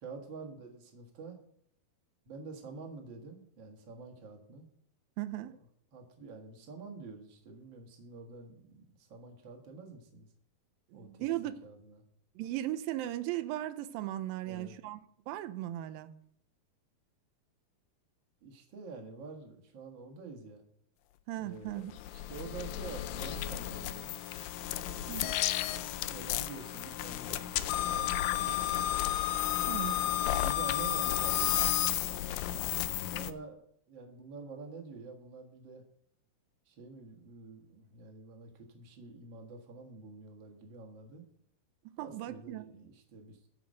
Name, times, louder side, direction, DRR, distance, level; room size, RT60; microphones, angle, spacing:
voice 1, 0.0-1.4 2.2-4.7 5.5-5.6 5.9-10.3 10.9-11.3 11.6-12.0 14.4-14.8 18.4-20.6 21.4-24.2 24.7-25.1 25.9-29.0 29.9-31.6 33.0-33.6 33.9-35.8 36.6-41.2 42.0-43.4, right 4 dB, 45° right, 3 dB, 1.6 m, -48 dB
voice 2, 5.2-5.6 10.9-11.6 12.4-16.1 21.3-21.9 25.1-25.4 29.7-30.0 42.0-42.7, right 14 dB, 80° right, 12 dB, 2.2 m, -37 dB
sound 1, 21.7-33.3, left 13 dB, 85° left, 2.0 m, -32 dB
12.5 x 5.1 x 6.5 m, 0.67 s
omnidirectional pair, 4.5 m